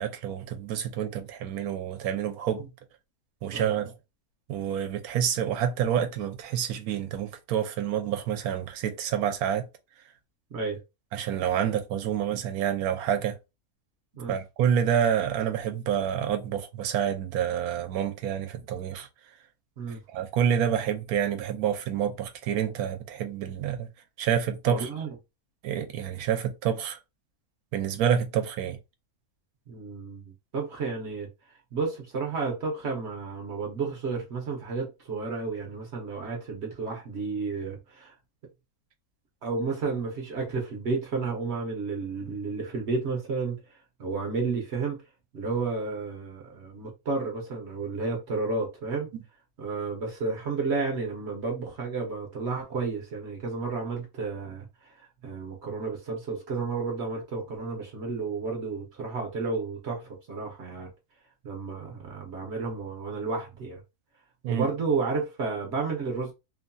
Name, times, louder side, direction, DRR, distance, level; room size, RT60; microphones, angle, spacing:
voice 1, 0.0-2.6 3.4-3.9 4.5-9.7 11.1-13.4 14.3-19.1 20.1-23.9 24.2-24.9 25.6-27.0 27.7-28.8 49.1-49.2 64.4-64.7, right 9 dB, 80° right, 1.1 m, -28 dB
voice 2, 24.7-25.1 29.7-31.3 31.7-38.1 39.4-43.6 44.0-45.0 45.3-49.1 49.6-60.9 61.4-63.8 64.5-66.3, right 4 dB, 55° right, 0.9 m, -32 dB
2.9 x 2.5 x 2.2 m
omnidirectional pair, 1.6 m